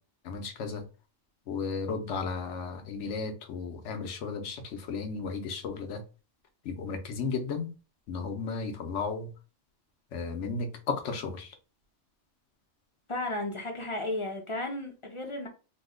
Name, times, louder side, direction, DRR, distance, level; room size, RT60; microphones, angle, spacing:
voice 1, 0.2-0.8 1.5-6.0 6.6-7.7 8.1-9.3 10.1-11.5, left 4 dB, 90° left, 1.0 m, -34 dB
voice 2, 13.1-15.5, left 2 dB, 45° left, 0.4 m, -34 dB
2.9 x 2.0 x 3.5 m
omnidirectional pair, 1.2 m